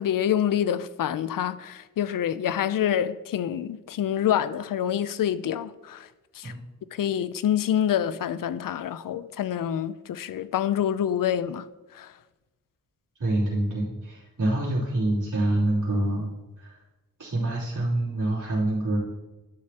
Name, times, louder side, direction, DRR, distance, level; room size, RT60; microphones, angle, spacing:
voice 1, 0.0-6.1 6.4-6.5 6.9-11.7 11.9-12.1, left 10 dB, 70° left, 0.5 m, -26 dB
voice 2, 13.2-16.3 16.6-16.7 17.2-19.0, right 1 dB, 60° right, 2.9 m, -26 dB
11.0 x 6.7 x 2.9 m
wide cardioid pair, 125°, 34 cm